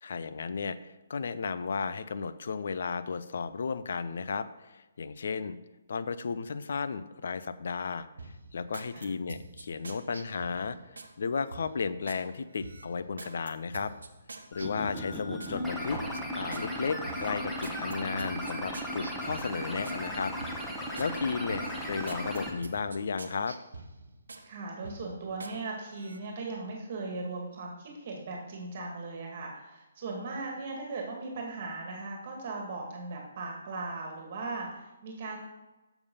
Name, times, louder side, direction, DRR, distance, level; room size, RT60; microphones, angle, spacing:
voice 1, 0.0-5.6 5.9-8.1 8.5-10.8 11.2-13.9 14.5-16.0 16.4-20.3 20.7-23.6, left 5 dB, 65° left, 12 dB, 0.6 m, -34 dB
sound 1, 8.2-11.1 11.5-12.2 12.6-15.6 16.0-16.7 17.0-20.0 20.4-21.1 21.5-24.5 24.8-25.6 25.9-26.2, right 3 dB, 75° right, 0.9 m, -46 dB
sound 2, 14.5-22.5, equal, ahead, 1.3 m, -36 dB
voice 2, 24.5-35.4, right 3 dB, 45° right, 0 dB, 2.1 m, -38 dB
7.1 x 6.8 x 5.4 m, 1.1 s
figure-of-eight pair, 140°, 0 cm